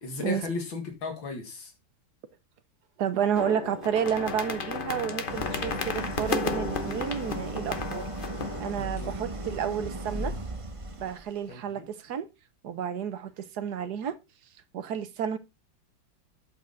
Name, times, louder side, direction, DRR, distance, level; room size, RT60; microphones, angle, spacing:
voice 1, 0.0-1.7 8.8-9.1 11.5-11.8, left 3 dB, 85° left, 2.6 m, -35 dB
voice 2, 3.0-8.1 8.6-10.3 11.0-12.3 12.6-14.2 14.7-15.4, right 8 dB, 65° right, 1.4 m, -31 dB
sound 1, 3.4-8.9, left 4 dB, 40° left, 0.8 m, -33 dB
Idling, 5.3-11.4, right 2 dB, 40° right, 0.4 m, -36 dB
8.6 x 7.0 x 3.9 m
omnidirectional pair, 2.1 m